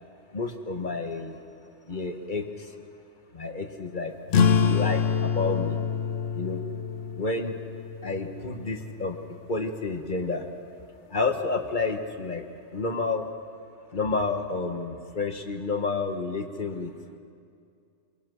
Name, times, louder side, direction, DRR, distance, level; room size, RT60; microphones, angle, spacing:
voice 1, 0.3-1.4 1.9-2.5 3.3-5.8 6.3-6.6 7.2-7.5 8.0-9.2 9.5-10.4 11.1-12.4 12.7-13.3 13.9-16.9, left 3 dB, 45° left, 6 dB, 1.4 m, -30 dB
sound 1, 4.3-9.4, left 6 dB, 65° left, 0.9 m, -26 dB
24.5 x 21.5 x 6.3 m, 2.4 s
omnidirectional pair, 1.2 m